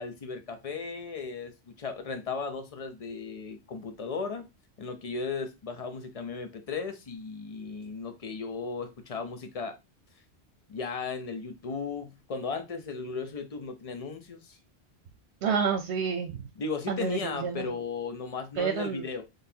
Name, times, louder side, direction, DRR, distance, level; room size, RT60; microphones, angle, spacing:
voice 1, 0.0-4.4 4.8-9.8 10.7-14.6 16.6-19.2, left 4 dB, 40° left, 0.7 m, -36 dB
voice 2, 15.4-16.5 16.9-17.7 18.6-19.0, right 6 dB, 80° right, 0.9 m, -29 dB
4.1 x 3.3 x 2.7 m
omnidirectional pair, 1.1 m